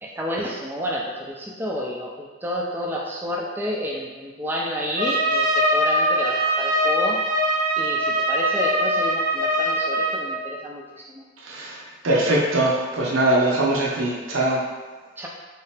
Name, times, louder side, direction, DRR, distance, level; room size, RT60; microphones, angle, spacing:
voice 1, 0.0-7.2 7.8-11.2 15.2-15.3, equal, 10° right, -3 dB, 0.4 m, -30 dB
Trumpet, 5.0-10.3, equal, 40° right, 0.8 m, -22 dB
voice 2, 12.0-14.6, right 1 dB, 85° right, -3 dB, 0.7 m, -21 dB
3.2 x 2.9 x 3.3 m, 1.3 s
head